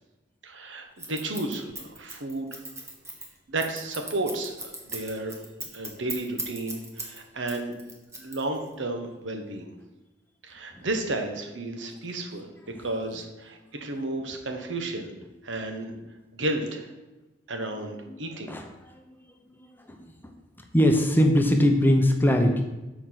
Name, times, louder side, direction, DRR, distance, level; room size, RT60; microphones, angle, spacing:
voice 1, 0.4-2.6 3.5-5.4 5.7-7.7 8.2-9.7 10.4-12.5 12.8-15.1 15.4-15.9 16.3-16.9 17.5-18.5, right 2 dB, 90° right, 4 dB, 1.1 m, -32 dB
Scissors, 1.0-7.2 7.5-8.7, right 2 dB, 15° right, 1.1 m, -37 dB
voice 2, 18.0-18.7 18.9-19.2 19.5-19.6 19.9-20.0 20.7-22.6, equal, 10° left, 4 dB, 0.7 m, -21 dB
7.0 x 4.6 x 5.8 m, 1.1 s
head